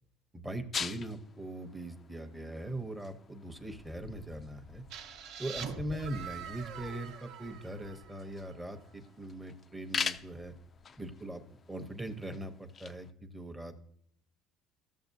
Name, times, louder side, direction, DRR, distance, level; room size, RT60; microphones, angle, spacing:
voice 1, 0.3-4.8 5.4-10.5 11.0-11.4 11.7-13.8, right 1 dB, 10° right, 7 dB, 0.7 m, -41 dB
sound 1, 0.7-13.1, left 6 dB, 25° left, 0.3 m, -44 dB
sound 2, 4.9-8.6, right 7 dB, 65° right, 0.8 m, -45 dB
14.0 x 6.8 x 2.6 m, 0.68 s
cardioid pair, 145°, 0 cm